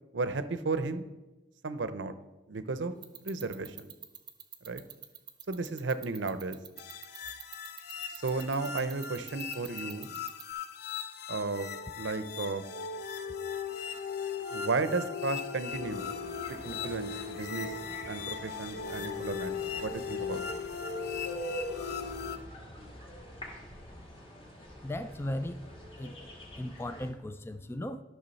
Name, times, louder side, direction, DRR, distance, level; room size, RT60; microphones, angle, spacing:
voice 1, 0.1-1.1 1.6-2.1 2.5-2.9 3.2-3.9 4.6-4.8 5.5-6.6 8.1-10.2 11.3-11.7 11.9-12.6 14.5-16.0 16.6-17.7 18.1-20.4, right 3 dB, 75° right, 12 dB, 0.7 m, -34 dB
sound 1, 3.0-10.5, right 9 dB, 25° right, 0.7 m, -44 dB
sound 2, 6.8-22.4, left 6 dB, 60° left, 0.6 m, -38 dB
sound 3, 15.7-27.1, equal, 30° left, 1.7 m, -44 dB
voice 2, 24.8-25.6 26.0-26.2 26.6-28.0, left 1 dB, 15° left, 11 dB, 0.4 m, -36 dB
12.0 x 6.3 x 4.1 m, 1.1 s
head